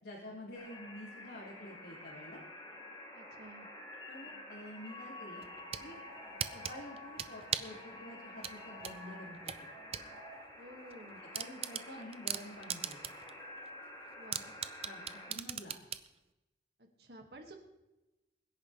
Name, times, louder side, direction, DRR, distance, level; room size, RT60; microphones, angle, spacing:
voice 1, 0.0-2.4 4.1-5.4 5.8-6.0 6.5-9.7 11.3-13.0 14.8-15.0 15.3-15.8, left 1 dB, 75° left, -5 dB, 2.9 m, -49 dB
sound 1, 0.5-15.3, left 1 dB, 25° left, 2.5 m, -49 dB
voice 2, 3.1-3.7 10.6-11.2 11.8-12.1 14.2-14.5 16.8-17.5, right 1 dB, 60° right, 3 dB, 2.1 m, -53 dB
sound 2, 5.4-5.9 6.4-7.8 8.4-10.1 10.4-10.5 10.9-11.0 11.3-13.3 13.7-13.8 14.3-16.1, right 9 dB, 35° right, 0.5 m, -38 dB
22.0 x 10.5 x 3.4 m, 1.0 s
head